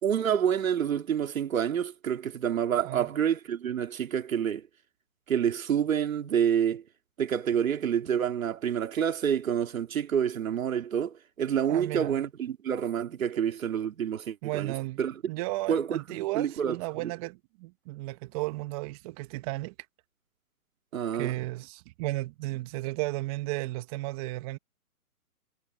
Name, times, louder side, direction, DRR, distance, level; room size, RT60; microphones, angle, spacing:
voice 1, 0.0-4.6 5.3-6.8 7.2-15.2 15.7-17.1 20.9-21.4, right 8 dB, 65° right, 2.9 m, -28 dB
voice 2, 11.7-12.2 13.3-13.4 14.4-15.0 15.3-19.7 21.1-24.6, right 20 dB, 25° right, 1.6 m, -34 dB
hypercardioid pair, 150°, 44 cm